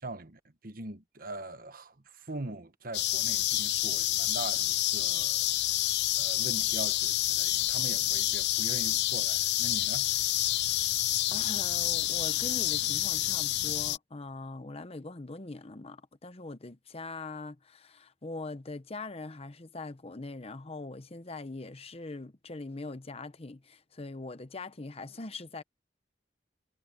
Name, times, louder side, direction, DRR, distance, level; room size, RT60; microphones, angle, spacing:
voice 1, 0.0-5.8 6.2-10.1, right 2 dB, 55° right, 1.3 m, -42 dB
sound 1, 2.9-14.0, left 15 dB, 75° left, 0.7 m, -28 dB
voice 2, 11.3-25.6, left 3 dB, 35° left, 0.9 m, -42 dB
head